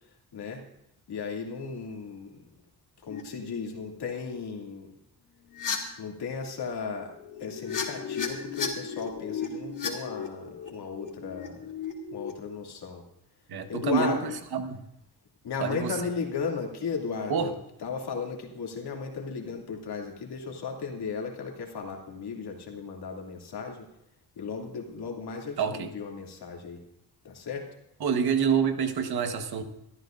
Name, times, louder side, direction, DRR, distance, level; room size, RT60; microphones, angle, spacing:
voice 1, 1.1-2.4 3.0-4.9 6.0-11.7 12.1-13.0 13.7-14.2 15.4-17.5 17.8-23.9 24.4-26.8 27.2-27.7, left 5 dB, 70° left, 0 dB, 2.6 m, -35 dB
sound 1, 3.1-3.2 3.8-4.1 5.5-5.8 7.1-12.3, left 6 dB, 50° left, 2.4 m, -35 dB
voice 2, 13.5-14.8 15.6-15.9 17.3-17.5 25.6-25.9 28.0-29.6, right 6 dB, 65° right, 7 dB, 1.4 m, -27 dB
22.5 x 13.0 x 2.6 m, 0.79 s
wide cardioid pair, 140°, 40 cm